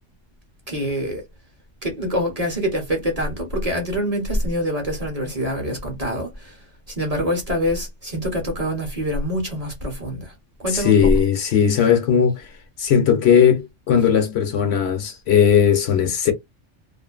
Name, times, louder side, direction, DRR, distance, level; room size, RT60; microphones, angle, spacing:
voice 1, 0.7-1.2 1.8-10.3 10.6-11.0, equal, 35° right, 0.9 m, -25 dB
voice 2, 10.7-12.5 12.8-16.3, left 8 dB, 65° left, 0.9 m, -17 dB
2.5 x 2.4 x 2.3 m
omnidirectional pair, 1.3 m